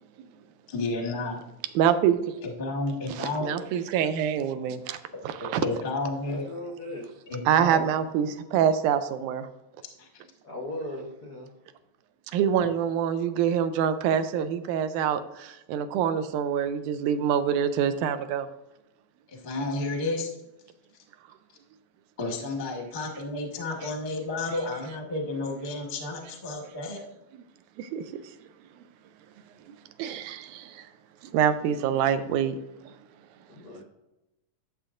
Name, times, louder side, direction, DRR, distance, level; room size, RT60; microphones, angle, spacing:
voice 1, 0.7-1.3 2.4-3.5 5.6-6.4 7.3-7.8 10.0-10.1 19.3-20.3 22.2-27.0, left 2 dB, 45° left, 1 dB, 0.6 m, -31 dB
voice 2, 1.8-2.4 3.2-5.0 5.2-5.6 7.5-9.5 12.3-18.5 27.8-28.2 30.0-30.9 31.3-32.6 32.9-33.0, right 8 dB, 90° right, 11 dB, 2.1 m, -25 dB
voice 3, 6.3-7.1 10.4-11.5 30.0-30.1 33.5-33.8, left 1 dB, 80° left, 0 dB, 0.8 m, -38 dB
13.0 x 7.0 x 2.5 m, 0.94 s
omnidirectional pair, 3.5 m